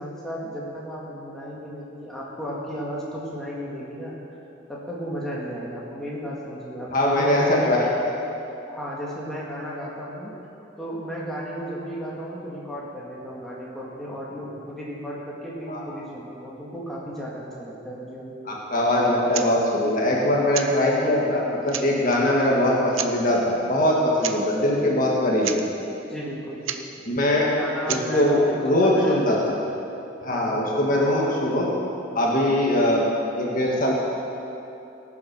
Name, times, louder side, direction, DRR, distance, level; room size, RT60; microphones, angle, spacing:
voice 1, 0.0-4.1 4.7-7.7 8.7-10.3 10.8-18.3 26.0-26.6 27.4-29.5 30.3-30.7, equal, ahead, -6 dB, 2.2 m, -34 dB
voice 2, 6.9-7.8 8.0-8.1 15.7-15.8 18.5-25.5 27.1-27.5 27.9-29.5 30.2-31.7 32.1-33.1 33.4-34.0, left 1 dB, 45° left, -3 dB, 1.7 m, -21 dB
sound 1, 19.3-19.5 20.5-20.7 21.3-21.4 21.7-22.2 22.9-23.1 24.2-24.4 24.6-24.7 25.1-25.2 25.4-25.6 26.6-26.8 27.9-28.1, right 10 dB, 80° right, 0.7 m, -30 dB
18.0 x 7.3 x 6.7 m, 2.9 s
head